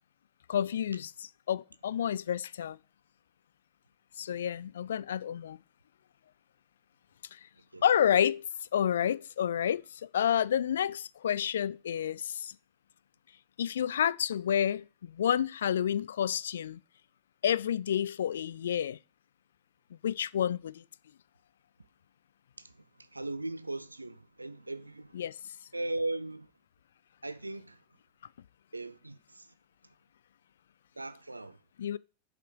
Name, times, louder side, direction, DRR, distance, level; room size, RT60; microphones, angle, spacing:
voice 1, 0.5-2.8 4.2-5.6 7.3-7.4 7.8-8.5 8.7-12.5 13.6-16.8 17.4-19.0 20.0-20.8 25.1-25.3 31.8-32.0, left 9 dB, 65° left, 0.3 m, -29 dB
voice 2, 23.1-25.2 25.7-26.5 27.2-27.8 28.7-29.5 31.0-31.6, right 2 dB, 85° right, 0.5 m, -38 dB
7.1 x 5.8 x 4.5 m
figure-of-eight pair, 90°, 0 cm